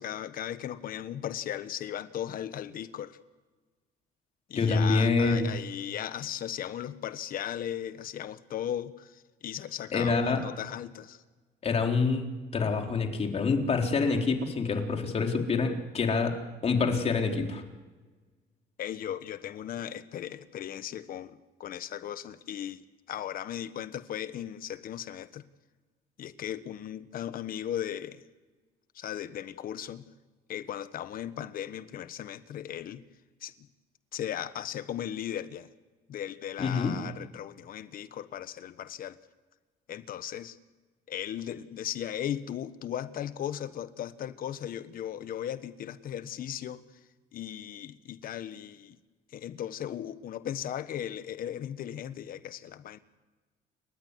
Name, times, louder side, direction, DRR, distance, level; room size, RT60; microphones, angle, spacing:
voice 1, 0.0-3.2 4.5-9.1 9.4-11.2 18.8-22.8 23.1-25.4 26.2-28.2 28.9-30.1 30.5-33.0 33.4-33.5 34.1-35.7 36.1-39.2 39.9-40.6 41.1-46.8 47.3-49.0 49.3-53.0, left 10 dB, 55° left, 1.3 m, -37 dB
voice 2, 4.6-5.5 9.9-10.4 11.6-17.6 36.6-37.0, left 4 dB, 40° left, 4.0 m, -26 dB
29.5 x 14.0 x 9.8 m
cardioid pair, 110°, 17 cm